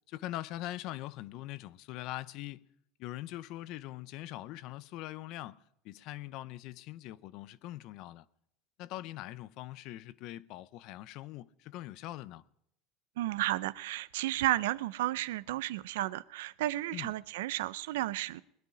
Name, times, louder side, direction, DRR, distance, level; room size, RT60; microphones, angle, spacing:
voice 1, 0.1-2.6 3.0-5.6 5.8-8.3 8.8-12.4 16.9-17.1, left 15 dB, 60° left, 0.6 m, -42 dB
voice 2, 13.2-18.4, right 16 dB, 85° right, 0.4 m, -33 dB
21.0 x 10.0 x 5.0 m
supercardioid pair, 115°, 0 cm